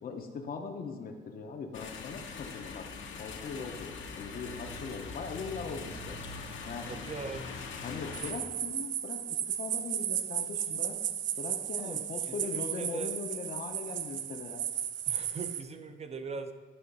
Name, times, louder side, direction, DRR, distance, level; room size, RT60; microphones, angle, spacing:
voice 1, 0.0-2.9 3.2-6.2 6.7-7.0 7.8-11.0 11.4-14.6, left 5 dB, 45° left, 4 dB, 0.7 m, -40 dB
sound 1, 1.7-8.3, left 4 dB, 75° left, 1.0 m, -42 dB
voice 2, 6.9-7.5 11.8-12.0 12.3-13.2 15.1-16.5, right 4 dB, 30° right, 8 dB, 0.7 m, -41 dB
sound 2, 8.1-15.6, right 10 dB, 70° right, 0.5 m, -34 dB
10.0 x 3.9 x 5.3 m, 1.4 s
cardioid pair, 90°, 20 cm